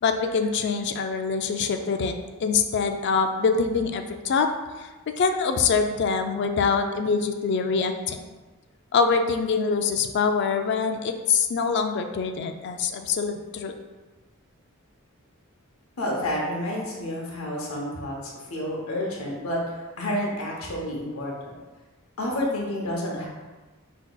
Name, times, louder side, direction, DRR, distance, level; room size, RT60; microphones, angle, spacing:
voice 1, 0.0-4.5 4.8-4.9 5.2-8.2 8.9-13.7, left 5 dB, 50° left, 6 dB, 0.3 m, -24 dB
voice 2, 16.0-18.2 18.5-19.6 20.0-21.6 22.2-23.3, left 1 dB, 75° left, -2 dB, 0.8 m, -29 dB
5.9 x 2.9 x 2.2 m, 1.3 s
head